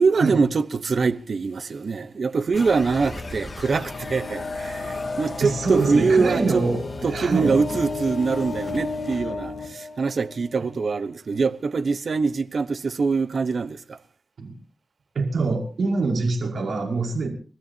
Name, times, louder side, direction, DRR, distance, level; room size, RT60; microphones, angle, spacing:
voice 1, 0.0-6.6 7.0-14.0, right 4 dB, 55° right, 0.9 m, -23 dB
sound 1, 2.5-9.3, left 3 dB, 40° left, 2.1 m, -38 dB
sound 2, 3.7-10.6, left 3 dB, 80° left, 3.6 m, -33 dB
voice 2, 5.4-7.6 14.4-14.6 15.1-17.3, right 3 dB, 75° right, 5.4 m, -25 dB
29.5 x 14.0 x 2.8 m
wide cardioid pair, 105°, 0 cm